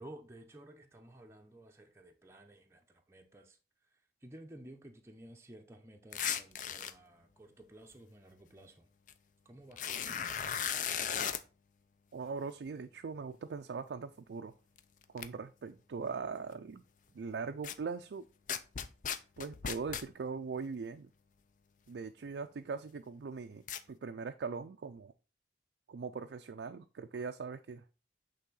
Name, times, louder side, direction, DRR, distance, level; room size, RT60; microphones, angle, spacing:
voice 1, 0.0-2.8 3.1-3.6 4.2-8.9 9.5-10.7, right 1 dB, 15° right, 0.6 m, -54 dB
sound 1, 6.1-6.9 9.1-9.2 9.7-11.4 14.8-14.9 15.2-15.3 17.6-17.7 18.5-20.0 23.7-23.8, left 8 dB, 45° left, 0.4 m, -36 dB
voice 2, 12.1-14.5 15.1-16.8 17.1-18.3 19.4-21.1 21.9-25.1 25.9-27.8, right 5 dB, 75° right, 0.4 m, -41 dB
8.3 x 3.5 x 3.8 m
head